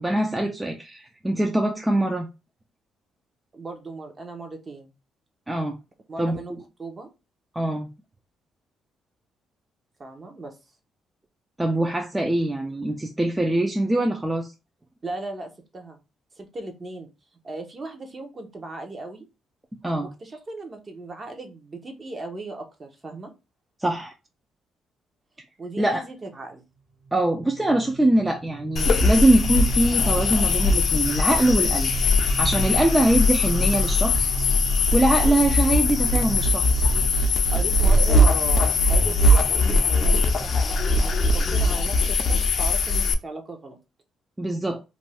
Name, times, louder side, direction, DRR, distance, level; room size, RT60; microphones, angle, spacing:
voice 1, 0.0-2.3 5.5-5.8 6.2-6.4 7.5-7.9 11.6-14.5 19.8-20.1 23.8-24.1 25.8-26.0 27.1-31.9 32.4-34.3 34.9-36.8 44.4-44.8, right 1 dB, 10° right, 0.4 m, -23 dB
voice 2, 3.5-4.9 6.1-7.1 10.0-10.6 15.0-16.0 16.4-17.1 17.4-19.3 20.0-23.3 25.6-26.6 37.5-43.8, right 2 dB, 35° right, 0.8 m, -37 dB
sound 1, 27.0-39.5, right 6 dB, 80° right, 1.5 m, -38 dB
sound 2, 28.8-43.1, left 2 dB, 50° left, 0.4 m, -20 dB
2.6 x 2.2 x 3.2 m
cardioid pair, 90°, 0 cm